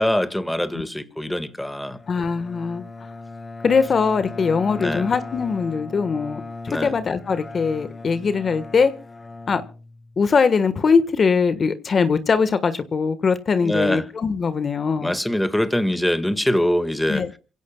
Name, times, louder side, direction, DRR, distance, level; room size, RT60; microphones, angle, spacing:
voice 1, 0.0-2.0 4.8-5.1 6.7-7.0 13.6-14.0 15.0-17.2, left 1 dB, 5° left, 1.7 m, -23 dB
Bowed string instrument, 1.9-10.3, left 3 dB, 25° left, 1.2 m, -38 dB
voice 2, 2.1-2.8 3.6-8.9 9.5-9.6 10.2-15.1 17.1-17.3, left 5 dB, 45° left, 1.4 m, -21 dB
27.5 x 16.5 x 2.3 m
cardioid pair, 90°, 0 cm